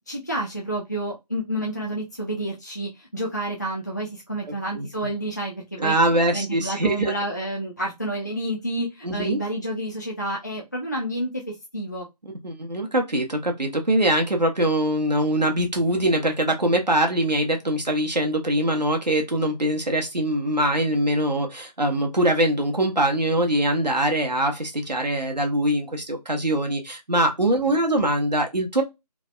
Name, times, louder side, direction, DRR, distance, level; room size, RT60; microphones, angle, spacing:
voice 1, 0.1-6.0 6.3-12.1 27.7-27.8, right 1 dB, 25° left, 0.4 m, -29 dB
voice 2, 4.5-4.9 5.8-7.1 9.0-9.4 12.4-28.8, right 1 dB, 85° right, 1.0 m, -23 dB
3.3 x 2.2 x 2.3 m
figure-of-eight pair, 160°, 21 cm